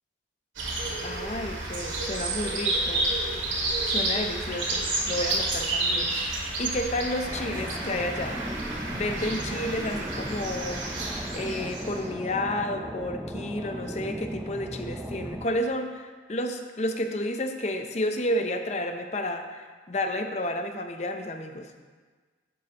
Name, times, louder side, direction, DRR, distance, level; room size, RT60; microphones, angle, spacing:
sound 1, 0.6-12.1, right 2 dB, 85° right, 2.1 m, -30 dB
voice 1, 1.0-3.1 3.9-8.4 8.9-21.7, left 1 dB, 35° left, 6 dB, 0.6 m, -31 dB
sound 2, 7.2-15.5, equal, 10° right, 0.4 m, -37 dB
11.0 x 8.3 x 2.9 m, 1.4 s
head